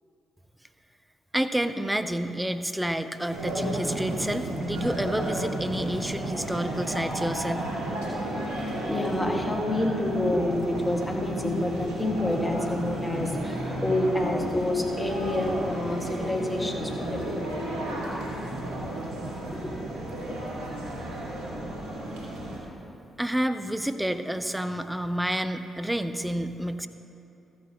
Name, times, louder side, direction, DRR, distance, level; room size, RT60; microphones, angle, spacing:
voice 1, 1.3-7.7 23.2-26.9, right 1 dB, 10° right, 9 dB, 0.6 m, -29 dB
sound 1, 3.3-22.6, right 1 dB, 80° right, 1.6 m, -33 dB
voice 2, 8.8-17.6 19.5-19.6, left 1 dB, 20° left, 1 dB, 1.6 m, -28 dB
14.0 x 9.5 x 2.8 m, 2.8 s
hypercardioid pair, 40°, 0 cm